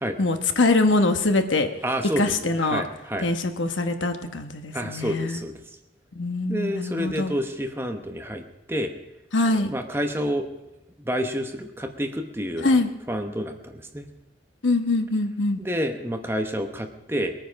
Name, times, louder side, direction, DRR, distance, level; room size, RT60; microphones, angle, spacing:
voice 1, 0.2-1.7 2.2-2.8 3.2-5.4 6.1-7.4 9.3-9.7 12.6-12.9 14.6-15.6, left 2 dB, 85° left, 7 dB, 1.1 m, -23 dB
voice 2, 1.8-3.3 4.7-5.5 6.5-8.9 9.5-10.5 11.0-12.8 13.1-14.1 15.6-17.3, equal, 10° right, 5 dB, 0.9 m, -29 dB
20.5 x 9.3 x 5.2 m, 0.93 s
head